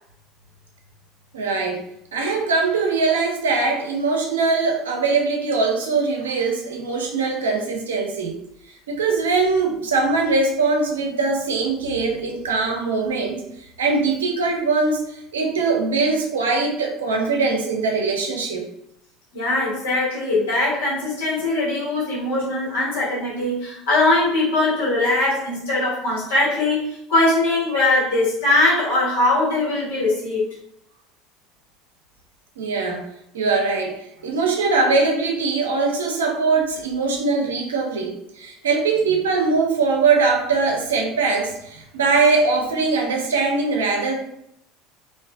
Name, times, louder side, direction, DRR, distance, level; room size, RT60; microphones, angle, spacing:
voice 1, 1.3-1.8 2.1-8.4 8.9-18.6 32.6-33.0 33.3-44.1, right 4 dB, 90° right, 1 dB, 0.5 m, -21 dB
voice 2, 19.3-30.4, left 2 dB, 80° left, -7 dB, 1.4 m, -21 dB
2.4 x 2.4 x 2.4 m, 0.75 s
hypercardioid pair, 80°, 0 cm